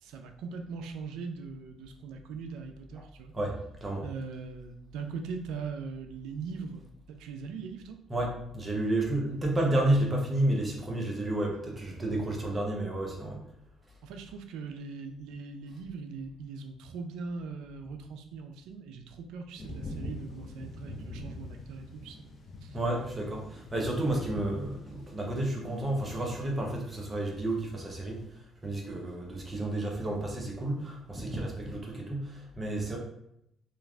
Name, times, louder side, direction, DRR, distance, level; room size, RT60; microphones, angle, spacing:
voice 1, 0.0-3.3 4.0-8.0 9.3-9.4 14.0-22.2 22.6-22.8, right 5 dB, 85° right, 6 dB, 0.3 m, -40 dB
voice 2, 3.3-4.0 8.1-13.5 22.7-33.0, right 1 dB, 25° right, -1 dB, 0.7 m, -31 dB
sound 1, 19.6-28.2, left 1 dB, 45° left, 0.4 m, -44 dB
3.1 x 2.4 x 2.3 m, 0.78 s
cardioid pair, 100°, 0 cm